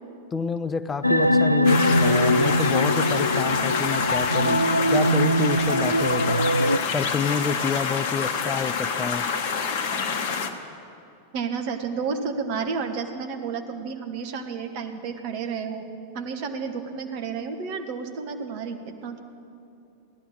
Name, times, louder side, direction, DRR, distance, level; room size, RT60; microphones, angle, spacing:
voice 1, 0.3-4.6 4.9-6.5 6.9-9.3, left 5 dB, 20° left, 12 dB, 0.4 m, -29 dB
sound 1, 1.0-6.8, left 1 dB, 85° left, 0.4 m, -21 dB
sound 2, 1.6-10.5, left 5 dB, 50° left, 1.1 m, -27 dB
voice 2, 11.3-15.8 16.1-19.2, right 5 dB, 45° right, 5 dB, 1.3 m, -31 dB
17.0 x 11.5 x 6.5 m, 2.7 s
figure-of-eight pair, 90°, 0 cm